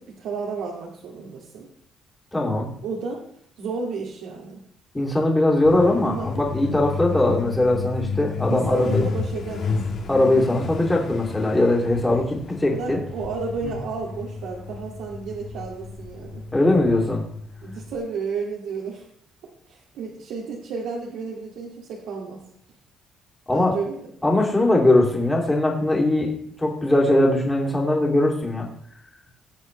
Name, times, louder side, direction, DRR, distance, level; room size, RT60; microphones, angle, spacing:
voice 1, 0.0-1.7 2.8-3.3 3.6-4.6 6.0-6.3 8.5-9.8 12.7-16.4 17.6-19.1 19.7-22.4 23.5-24.1, right 5 dB, 90° right, -3 dB, 2.3 m, -32 dB
voice 2, 2.3-2.7 4.9-9.1 10.1-13.0 13.6-13.7 16.5-17.2 23.5-23.7 24.2-26.3 26.6-28.7, left 1 dB, 10° left, -2 dB, 2.7 m, -20 dB
Truck, 5.6-18.0, left 4 dB, 50° left, 1.6 m, -32 dB
20.0 x 8.1 x 3.2 m, 0.66 s
cardioid pair, 150°, 0 cm